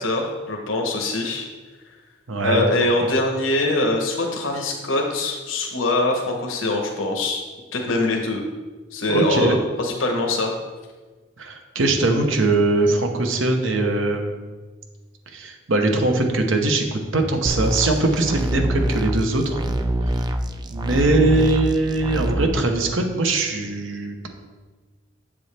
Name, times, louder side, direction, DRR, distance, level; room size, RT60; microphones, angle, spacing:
voice 1, 0.0-1.5 2.4-7.4 7.7-8.4 8.9-10.5, left 2 dB, 80° left, 2 dB, 1.0 m, -23 dB
voice 2, 2.3-2.7 9.1-9.6 11.4-14.4 15.3-19.6 20.1-20.2 20.7-24.3, right 2 dB, 75° right, 4 dB, 0.9 m, -21 dB
sound 1, 17.5-22.5, right 1 dB, 20° right, 0.4 m, -25 dB
7.8 x 7.0 x 3.4 m, 1.3 s
head